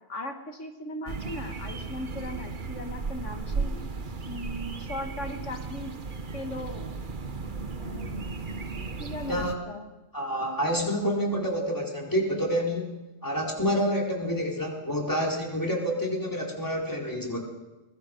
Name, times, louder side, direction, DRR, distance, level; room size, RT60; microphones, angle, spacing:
voice 1, 0.1-3.8 4.3-5.9 6.3-6.9 7.8-8.3 9.0-9.9, left 1 dB, 85° left, 5 dB, 2.0 m, -38 dB
sound 1, 1.1-9.6, right 4 dB, 45° right, 1.2 m, -35 dB
voice 2, 10.1-17.4, equal, 15° left, -1 dB, 4.2 m, -28 dB
23.0 x 21.5 x 5.3 m, 1.1 s
omnidirectional pair, 1.2 m